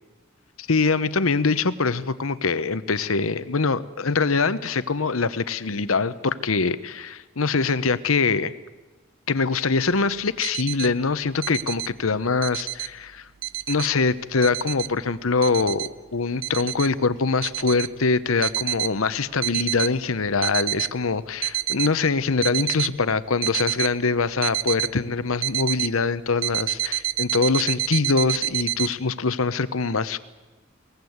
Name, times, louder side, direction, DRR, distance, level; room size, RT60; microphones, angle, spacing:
voice 1, 0.6-8.5 9.3-13.3 13.7-30.2, left 4 dB, 85° left, 14 dB, 0.9 m, -23 dB
sound 1, 10.2-10.9 11.4-11.9 12.2-12.9 13.4-13.9 14.4-14.9 15.4-15.9 16.4-16.9 17.4-17.9 18.4-18.9 19.4-19.9 20.3-20.9 21.4-21.9 22.4-22.9 23.4-23.9 24.4-24.9 25.4-25.9 26.4-28.9, right 15 dB, 65° right, 0.6 m, -28 dB
22.5 x 19.5 x 8.0 m, 1.2 s
head